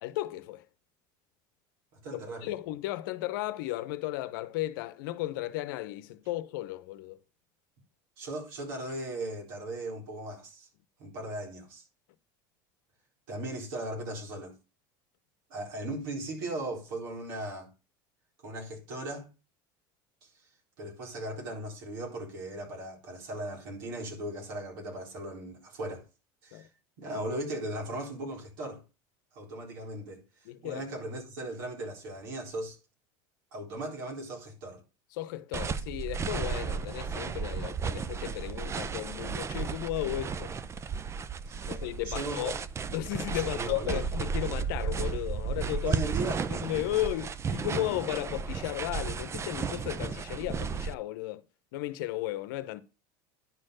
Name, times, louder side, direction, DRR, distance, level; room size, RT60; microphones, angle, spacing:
voice 1, 0.0-0.7 2.1-7.2 26.5-26.7 30.4-30.8 35.1-40.6 41.6-42.6 42.9-46.0 46.5-51.4 51.7-52.8, left 15 dB, 80° left, 0.8 m, -35 dB
voice 2, 1.9-2.5 8.2-10.7 11.0-11.8 13.3-14.5 15.5-17.7 18.4-19.3 20.2-20.3 20.8-26.0 26.4-26.7 27.0-28.8 29.3-30.2 30.6-32.8 33.5-34.8 41.5-41.8 42.0-42.5 43.3-44.1 45.8-46.4, right 1 dB, 75° right, 4.2 m, -37 dB
sound 1, 35.5-50.9, right 6 dB, 25° right, 0.6 m, -34 dB
10.5 x 4.4 x 6.4 m
supercardioid pair, 105°, 11 cm